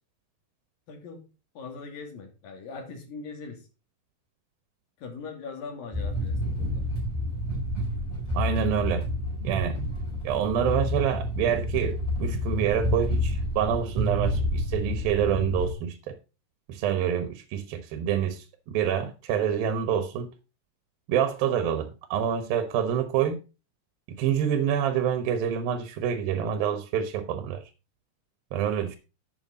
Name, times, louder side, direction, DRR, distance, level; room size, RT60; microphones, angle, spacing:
voice 1, 0.9-1.2 1.6-3.6 5.0-6.8, left 4 dB, 80° left, 4.3 m, -40 dB
sound 1, 5.9-15.7, left 1 dB, 5° left, 5.8 m, -29 dB
voice 2, 8.3-9.1 9.4-9.8 10.2-16.0 16.7-20.3 21.1-23.4 24.2-27.6 28.5-29.0, right 9 dB, 90° right, 2.8 m, -27 dB
11.5 x 7.8 x 4.0 m
omnidirectional pair, 4.0 m